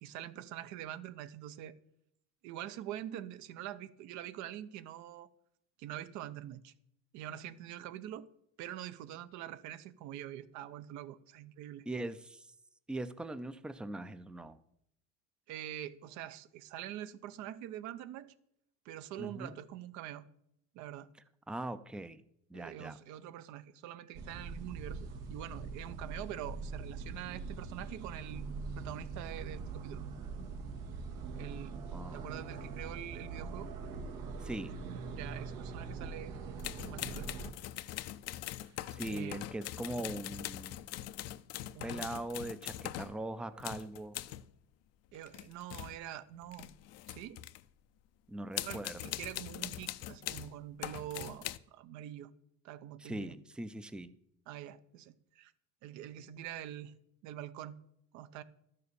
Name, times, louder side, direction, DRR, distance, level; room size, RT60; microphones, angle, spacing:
voice 1, 0.0-1.7 2.4-5.3 5.8-6.7 7.1-8.3 8.6-11.9 15.5-18.3 18.8-20.2 20.7-21.1 22.5-28.5 28.7-30.0 31.4-33.7 35.1-36.4 36.9-37.3 38.5-39.4 41.7-42.1 45.1-46.7 47.1-47.4 48.6-52.3 52.6-53.3 54.5-55.5 55.8-56.9 57.2-57.8 58.1-58.4, right 12 dB, 65° right, 0.8 m, -45 dB
voice 2, 11.9-12.5 12.9-14.6 19.2-19.6 21.5-22.2 22.5-23.0 31.9-32.2 34.4-34.8 38.9-40.9 41.8-44.2 48.3-49.3 53.0-54.1, right 1 dB, 5° right, 0.4 m, -41 dB
sound 1, 24.1-37.5, right 4 dB, 85° right, 1.8 m, -43 dB
sound 2, 36.6-43.2 43.6-44.5 45.1-46.0 46.4-47.6 48.5-50.5 50.8-51.6, left 14 dB, 55° left, 0.6 m, -42 dB
12.5 x 6.8 x 6.8 m
cardioid pair, 135°, 31 cm